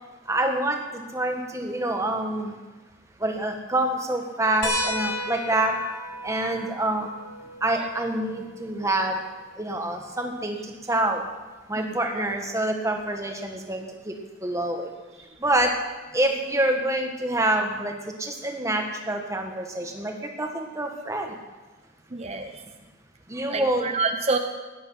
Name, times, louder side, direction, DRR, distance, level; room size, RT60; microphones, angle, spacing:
voice 1, 0.3-2.5 3.2-5.7 6.2-7.1 7.6-9.2 9.6-10.6 10.9-11.2 11.7-14.1 14.4-14.9 15.4-15.7 16.1-17.9 18.2-21.3 23.3-23.9, right 1 dB, 15° right, 3 dB, 1.7 m, -26 dB
sound 1, 4.6-9.7 11.2-11.3 13.0-13.1, left 1 dB, 85° left, 2.7 m, -34 dB
voice 2, 11.7-12.2 15.3-15.4 22.1-22.6 23.5-24.4, right 4 dB, 35° right, 5 dB, 0.9 m, -28 dB
17.0 x 10.5 x 5.8 m, 1.2 s
head